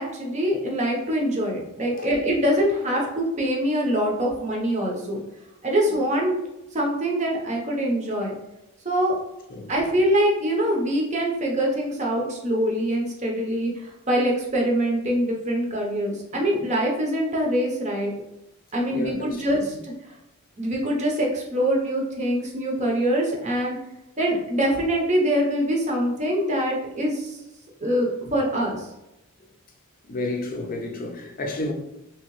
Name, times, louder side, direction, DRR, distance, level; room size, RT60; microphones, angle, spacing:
voice 1, 0.0-5.2 5.6-6.4 6.7-8.3 8.8-9.2 9.7-18.1 18.7-19.9 20.6-23.8 24.2-27.4 27.8-28.9, equal, 35° right, 0.7 m, -24 dB
voice 2, 18.9-19.6 30.0-31.7, left 2 dB, 40° left, 0.5 m, -31 dB
3.0 x 2.8 x 3.0 m
head